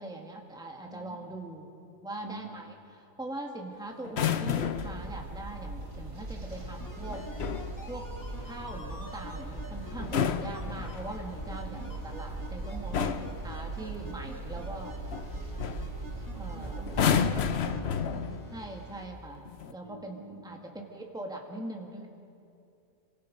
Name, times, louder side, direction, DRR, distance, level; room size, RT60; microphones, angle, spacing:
voice 1, 0.0-1.7 2.0-7.3 7.9-8.1 8.4-14.9 16.4-17.0 18.5-22.1, right 2 dB, 5° right, 1 dB, 2.0 m, -42 dB
voice 2, 0.9-1.3 2.2-2.7 9.9-10.4 11.5-11.9 12.7-13.4 16.1-18.5 19.8-20.6, right 1 dB, 30° right, 0 dB, 1.8 m, -47 dB
sound 1, 4.0-5.0 7.1-7.7 9.9-11.3 12.3-12.5 12.9-13.4 15.1-15.3 15.6-15.9 16.9-18.5 19.5-19.7, left 7 dB, 55° left, 0.9 m, -30 dB
sound 2, 4.7-17.6, right 2 dB, 65° right, 3.4 m, -40 dB
sound 3, 6.5-19.0 19.3-19.4, equal, 15° left, 2.3 m, -46 dB
27.5 x 24.0 x 5.3 m, 2.5 s
omnidirectional pair, 1.5 m